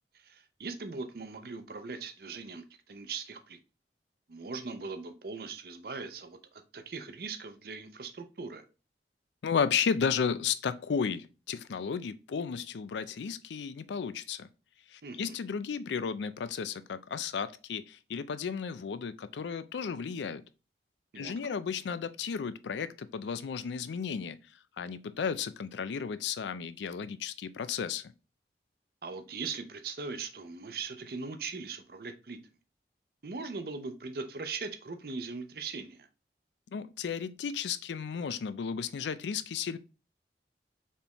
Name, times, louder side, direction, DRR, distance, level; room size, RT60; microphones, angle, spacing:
voice 1, 0.1-3.6 4.3-8.6 15.0-15.3 21.1-21.5 29.0-32.4 33.2-36.1, right 4 dB, 55° right, 0.6 m, -40 dB
voice 2, 9.4-14.5 14.9-20.4 21.1-24.4 24.8-28.0 36.7-39.8, left 6 dB, 85° left, 0.4 m, -33 dB
4.3 x 3.5 x 2.8 m
head